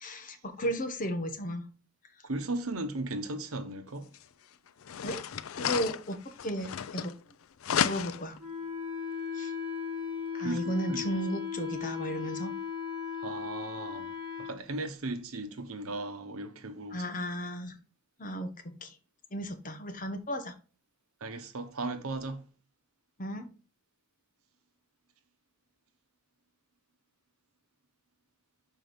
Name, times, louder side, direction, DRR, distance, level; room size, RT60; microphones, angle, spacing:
voice 1, 0.0-1.7 5.0-5.2 5.5-6.2 6.4-7.1 7.8-8.4 9.3-9.5 10.3-12.5 16.9-17.8 18.2-18.9 19.3-20.5 23.2-23.5, equal, 40° left, 1.1 m, -34 dB
voice 2, 2.2-4.1 10.4-11.2 13.2-17.1 21.2-22.4, right 2 dB, 75° right, 1.0 m, -37 dB
sound 1, 4.1-4.2 4.8-7.3 7.6-8.4, left 8 dB, 65° left, 0.4 m, -33 dB
Wind instrument woodwind instrument, 8.4-14.6, left 6 dB, 10° right, 4.0 m, -37 dB
6.2 x 4.6 x 5.2 m
head